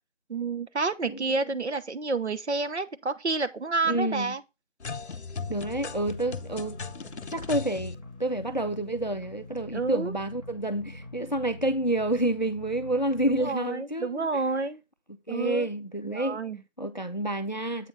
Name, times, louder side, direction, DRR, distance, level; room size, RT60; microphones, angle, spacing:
voice 1, 0.3-4.4 9.7-10.1 13.3-14.8 15.3-15.7 16.1-16.6, right 3 dB, 60° right, 0.9 m, -29 dB
voice 2, 3.9-4.3 5.5-6.8 7.3-14.3 15.3-16.4 16.8-17.9, right 1 dB, 35° left, 0.5 m, -29 dB
sound 1, 4.8-8.0, left 5 dB, 60° left, 0.8 m, -37 dB
sound 2, 5.4-13.5, left 2 dB, 25° right, 0.9 m, -45 dB
8.0 x 5.2 x 3.9 m
figure-of-eight pair, 175°, 38 cm